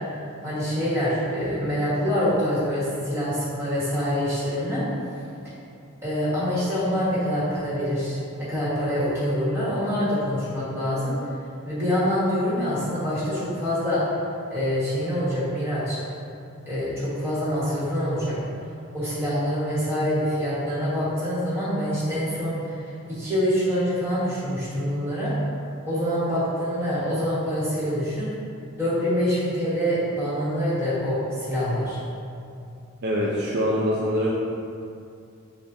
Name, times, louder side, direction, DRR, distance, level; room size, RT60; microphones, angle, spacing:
voice 1, 0.4-4.8 6.0-11.1 11.6-14.0 14.5-16.0 16.7-18.4 18.9-22.8 23.1-25.3 25.8-28.3 28.8-32.0, equal, 10° right, -11 dB, 1.3 m, -25 dB
voice 2, 33.0-34.3, equal, 50° right, -5 dB, 0.4 m, -24 dB
6.8 x 2.4 x 2.6 m, 2.5 s
head